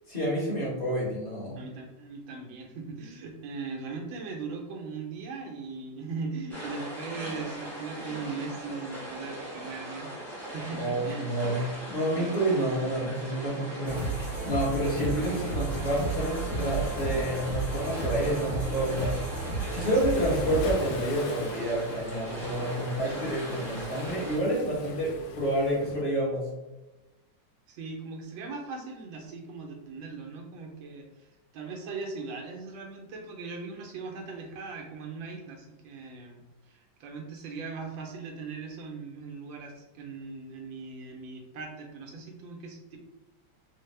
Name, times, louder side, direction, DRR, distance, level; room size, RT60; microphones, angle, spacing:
voice 1, 0.1-1.6 10.7-14.0 14.4-19.2 19.7-26.5, right 1 dB, 30° left, -6 dB, 0.9 m, -29 dB
voice 2, 1.6-11.3 12.1-12.3 20.0-20.3 27.7-43.0, right 4 dB, 85° right, 1 dB, 1.5 m, -39 dB
sound 1, 6.5-24.4, right 1 dB, ahead, 0.7 m, -39 dB
sound 2, 13.9-20.6, right 3 dB, 55° left, 1.8 m, -33 dB
Waves surf, 20.1-26.0, left 2 dB, 75° left, 0.9 m, -42 dB
4.2 x 2.1 x 3.2 m, 1.1 s
omnidirectional pair, 2.1 m